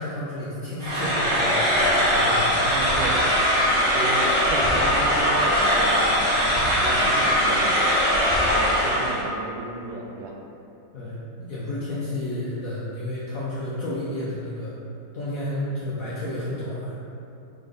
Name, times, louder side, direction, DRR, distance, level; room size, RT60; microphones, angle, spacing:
voice 1, 0.0-1.7 2.0-2.5 10.9-14.7 15.1-17.0, left 1 dB, 65° left, -8 dB, 0.8 m, -31 dB
sound 1, 0.8-9.2, equal, 45° right, 0.9 m, -21 dB
voice 2, 2.5-3.4 3.9-6.5 6.8-7.8 8.3-10.4, right 3 dB, 80° right, 0 dB, 1.3 m, -34 dB
4.1 x 3.8 x 3.4 m, 2.8 s
omnidirectional pair, 2.1 m